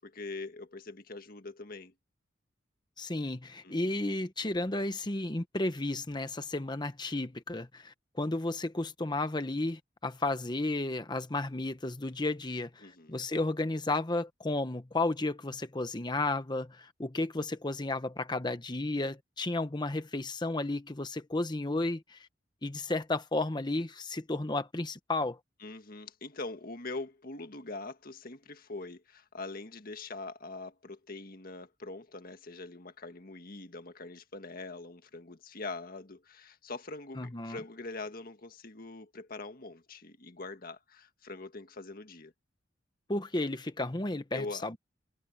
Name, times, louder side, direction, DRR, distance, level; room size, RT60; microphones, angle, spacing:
voice 1, 0.0-1.9 3.6-4.0 12.8-13.2 25.6-42.3 44.3-44.6, left 3 dB, 50° left, 1.8 m, -43 dB
voice 2, 3.0-22.2 22.6-25.4 37.2-37.6 43.1-44.8, left 2 dB, 20° left, 1.0 m, -33 dB
head